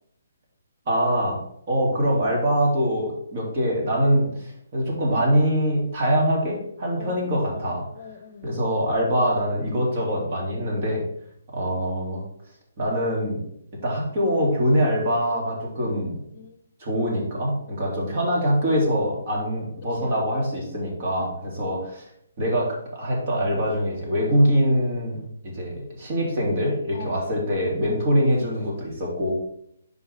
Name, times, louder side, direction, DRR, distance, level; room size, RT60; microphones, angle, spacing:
voice 1, 0.9-1.4 1.7-7.8 8.4-11.0 11.5-12.2 12.8-13.4 13.8-16.2 16.8-22.0 22.4-25.2 25.5-29.3, equal, 45° right, -2 dB, 3.0 m, -23 dB
voice 2, 7.0-8.6 16.3-16.6 20.0-20.2 21.5-21.6 26.9-27.3, left 6 dB, 45° left, 9 dB, 0.7 m, -43 dB
9.4 x 5.2 x 3.6 m, 0.73 s
figure-of-eight pair, 140°, 0 cm